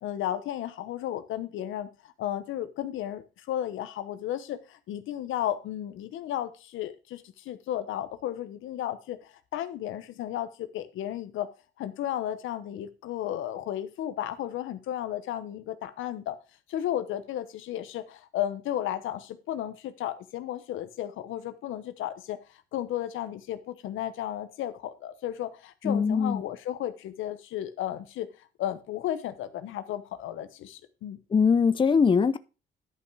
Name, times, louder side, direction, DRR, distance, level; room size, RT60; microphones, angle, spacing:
voice 1, 0.0-11.5 11.8-16.4 16.7-28.3 28.6-31.2, left 11 dB, 85° left, 1.1 m, -34 dB
voice 2, 25.8-26.4 31.3-32.4, left 5 dB, 25° left, 0.6 m, -22 dB
11.0 x 5.7 x 4.8 m
cardioid pair, 90°, 20 cm